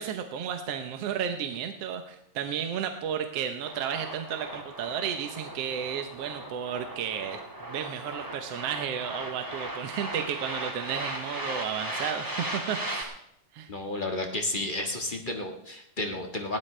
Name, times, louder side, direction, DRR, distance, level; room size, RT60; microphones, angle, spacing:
voice 1, 0.0-7.4 7.7-13.2 13.5-13.7, right 8 dB, 65° right, 6 dB, 1.8 m, -33 dB
sound 1, 3.7-13.0, right 1 dB, 10° right, 1.3 m, -37 dB
voice 2, 13.7-16.6, left 2 dB, 30° left, 3 dB, 0.9 m, -32 dB
20.5 x 16.5 x 3.3 m, 0.76 s
omnidirectional pair, 3.4 m